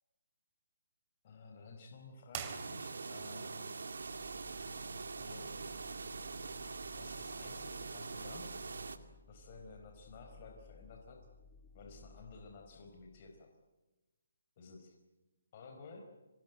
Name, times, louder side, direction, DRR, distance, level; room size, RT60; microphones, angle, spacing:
voice 1, 1.2-3.7 5.2-5.6 7.0-8.6 9.3-11.3 11.7-13.5 14.6-14.9 15.5-16.1, left 3 dB, 35° left, 3 dB, 4.5 m, -53 dB
sound 1, 2.3-3.3, right 9 dB, 25° right, 2.8 m, -45 dB
sound 2, 2.5-9.0, right 4 dB, 80° right, 2.4 m, -43 dB
sound 3, 3.9-13.5, left 4 dB, 5° left, 2.3 m, -60 dB
26.0 x 20.5 x 9.4 m, 1.1 s
hypercardioid pair, 160°, 0 cm